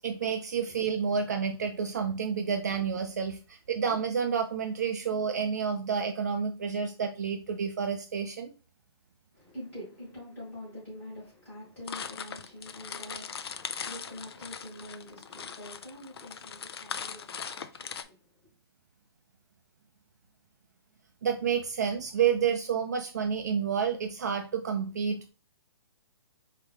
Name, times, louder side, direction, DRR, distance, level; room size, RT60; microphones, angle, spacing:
voice 1, 0.0-8.5 21.2-25.3, right 7 dB, 40° right, 0.4 m, -29 dB
voice 2, 9.3-18.5, left 1 dB, 10° left, 2.2 m, -46 dB
sound 1, 11.9-18.0, left 7 dB, 70° left, 0.4 m, -40 dB
4.5 x 2.8 x 3.3 m
hypercardioid pair, 175°, 14 cm